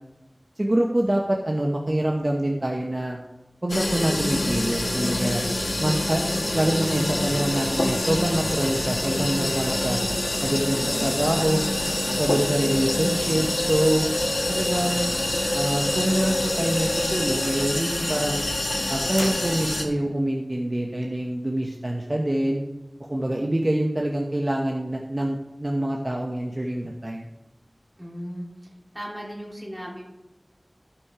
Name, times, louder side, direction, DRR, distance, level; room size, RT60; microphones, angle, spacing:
voice 1, 0.6-3.2 3.6-5.4 5.8-6.2 6.5-10.0 10.4-11.6 12.2-14.0 14.5-15.1 15.5-18.4 18.9-22.6 23.0-27.2, right 1 dB, 45° right, 0 dB, 1.1 m, -25 dB
sound 1, 3.7-19.8, left 1 dB, 85° left, 1.4 m, -26 dB
voice 2, 10.7-11.0 28.0-28.5 28.9-30.1, equal, 15° right, -5 dB, 4.1 m, -36 dB
sound 2, 19.2-20.2, equal, 15° left, 1.3 m, -38 dB
13.5 x 6.0 x 4.9 m, 0.97 s
wide cardioid pair, 40°, 0 cm